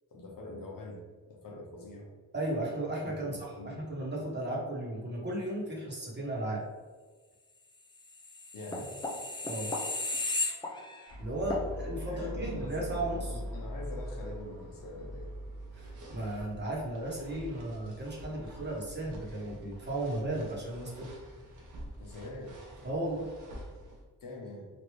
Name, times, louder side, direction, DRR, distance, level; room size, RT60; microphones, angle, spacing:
voice 1, 0.1-1.0 1.3-2.1 3.1-3.9 8.5-8.9 9.4-9.5 11.3-11.7 12.1-15.3 22.0-22.6 24.2-24.7, left 1 dB, 55° left, -1 dB, 0.9 m, -43 dB
voice 2, 2.3-3.4 3.6-6.6 9.4-9.7 11.2-13.3 15.7-21.1 22.8-23.3, right 1 dB, 25° right, -4 dB, 1.1 m, -35 dB
sound 1, 8.2-11.1 11.5-11.7, left 2 dB, 10° left, 0.5 m, -34 dB
sound 2, 11.1-24.0, equal, 50° right, 0.9 m, -44 dB
3.2 x 2.5 x 3.1 m, 1.4 s
cardioid pair, 70°, 39 cm